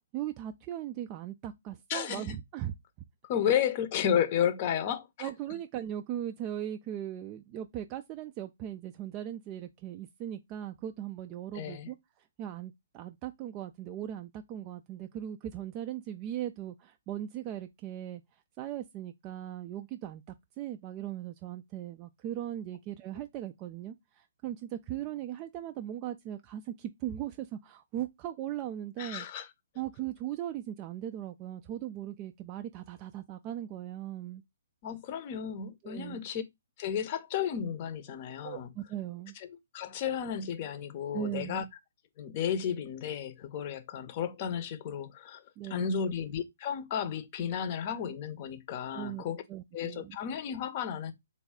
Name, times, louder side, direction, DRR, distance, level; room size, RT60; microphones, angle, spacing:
voice 1, 0.1-2.7 3.5-3.6 5.2-12.0 12.4-18.2 18.6-29.3 29.8-34.4 35.8-36.2 38.4-39.3 41.1-41.6 45.6-46.0 48.9-50.2, right 11 dB, 25° right, 0.3 m, -38 dB
voice 2, 1.9-2.3 3.2-5.3 11.5-11.9 29.0-29.5 34.8-36.4 36.8-38.7 39.4-39.5 39.7-41.6 42.2-45.4 45.7-49.4 49.7-51.1, left 8 dB, 35° left, 0.7 m, -33 dB
3.3 x 2.2 x 3.6 m
figure-of-eight pair, 125°, 0 cm